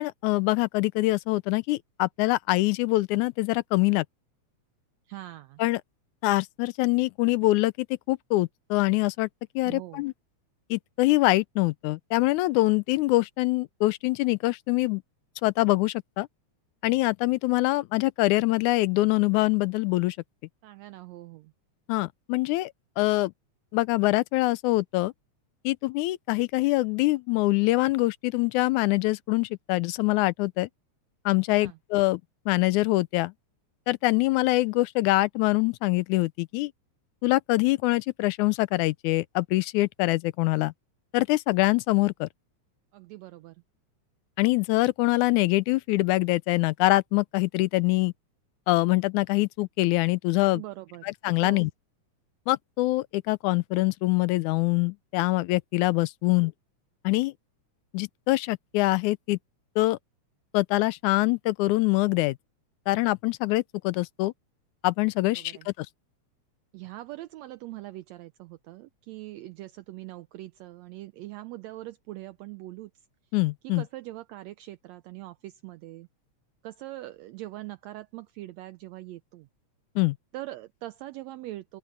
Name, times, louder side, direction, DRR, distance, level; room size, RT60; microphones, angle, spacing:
voice 1, 0.0-4.1 5.6-5.8 6.2-9.3 9.6-10.1 10.7-15.0 15.4-16.3 16.8-20.2 21.9-23.3 23.7-25.1 25.6-30.7 31.3-32.2 32.5-33.3 33.9-36.7 37.2-40.7 41.1-42.3 44.4-48.1 48.7-50.6 51.0-51.7 52.5-56.5 57.0-57.3 57.9-59.4 59.8-60.0 60.5-62.4 62.9-64.3 64.8-65.9 73.3-73.8 80.0-80.2, left 20 dB, 85° left, 2.0 m, -24 dB
voice 2, 5.1-5.6 9.7-10.0 20.6-21.5 31.5-31.8 42.9-43.6 50.5-51.0 51.4-51.7 65.2-65.7 66.7-72.9 73.6-76.1 76.6-79.5 80.3-81.8, right 16 dB, 75° right, 1.7 m, -42 dB
open air
omnidirectional pair, 3.4 m